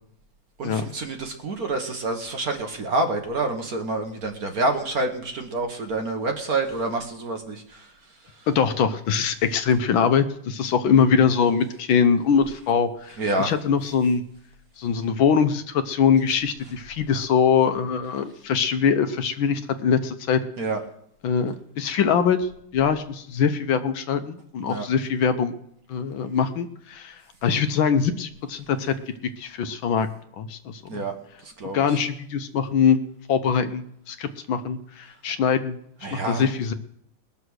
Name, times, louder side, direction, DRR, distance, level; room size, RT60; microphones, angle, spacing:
voice 1, 0.6-7.9 13.2-13.5 20.6-20.8 24.7-24.9 30.9-31.1 31.4-32.0 36.0-36.5, right 2 dB, 50° right, 4 dB, 1.5 m, -27 dB
voice 2, 8.5-14.2 14.8-20.4 21.2-25.5 25.9-28.9 29.4-30.1 30.4-31.0 31.7-33.0 33.3-35.8 36.1-36.7, left 6 dB, 70° left, 10 dB, 1.5 m, -23 dB
20.0 x 6.9 x 6.4 m, 0.71 s
omnidirectional pair, 2.3 m